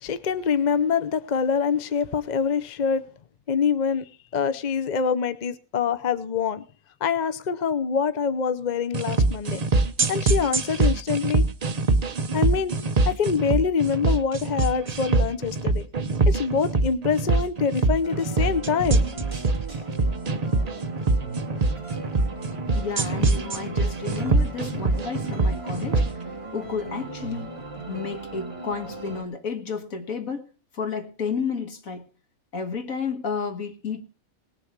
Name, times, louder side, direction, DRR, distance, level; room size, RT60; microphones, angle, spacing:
voice 1, 0.0-3.0 3.5-4.0 4.3-6.6 7.0-9.6 10.1-11.4 12.3-12.7 13.1-15.9 16.3-19.0, left 6 dB, 40° left, 12 dB, 0.7 m, -25 dB
sound 1, 8.9-26.1, right 3 dB, 40° right, 0.6 m, -23 dB
sound 2, 18.0-29.2, right 3 dB, 20° right, 2.9 m, -37 dB
voice 2, 22.7-26.1 26.5-27.5 27.9-30.5 30.7-32.1 32.5-34.0, left 5 dB, 70° left, 6 dB, 2.0 m, -31 dB
19.0 x 7.0 x 6.0 m, 0.37 s
omnidirectional pair, 1.5 m